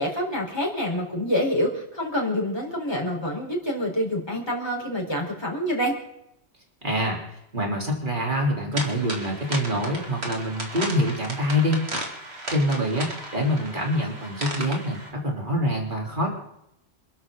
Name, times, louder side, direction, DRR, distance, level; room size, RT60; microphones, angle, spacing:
voice 1, 0.0-5.9, equal, 20° left, -2 dB, 4.4 m, -27 dB
voice 2, 6.8-7.2 7.5-11.9 12.5-16.3, equal, 40° right, -1 dB, 4.0 m, -25 dB
sound 1, 8.7-15.1, right 1 dB, 55° right, 3.0 m, -35 dB
27.5 x 12.5 x 3.9 m, 0.79 s
omnidirectional pair, 1.3 m